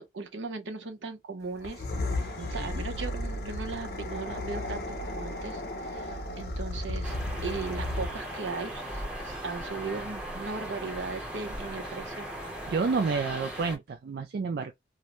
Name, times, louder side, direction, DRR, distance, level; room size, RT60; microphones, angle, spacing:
voice 1, 0.0-1.9 2.2-5.6 5.9-12.3, right 4 dB, 80° right, 0.8 m, -38 dB
sound 1, 1.6-8.4, left 1 dB, 55° left, 0.6 m, -34 dB
voice 2, 2.4-2.8 12.7-14.7, right 4 dB, 55° right, 0.3 m, -30 dB
sound 2, 7.0-13.8, right 1 dB, 5° right, 0.8 m, -38 dB
2.6 x 2.1 x 2.9 m
head